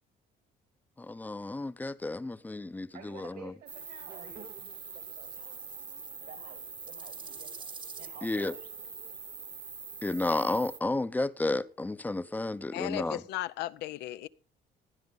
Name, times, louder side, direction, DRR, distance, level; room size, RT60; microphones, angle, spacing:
voice 1, 1.0-3.5 8.2-8.5 10.0-13.2, left 2 dB, 10° left, 0.6 m, -32 dB
voice 2, 2.9-4.5 4.9-5.6 6.2-8.7, right 6 dB, 70° right, 2.5 m, -51 dB
sound 1, 3.7-10.8, right 5 dB, 30° right, 1.0 m, -43 dB
voice 3, 12.7-14.3, left 15 dB, 80° left, 0.6 m, -36 dB
16.0 x 10.5 x 3.9 m
cardioid pair, 110°, 17 cm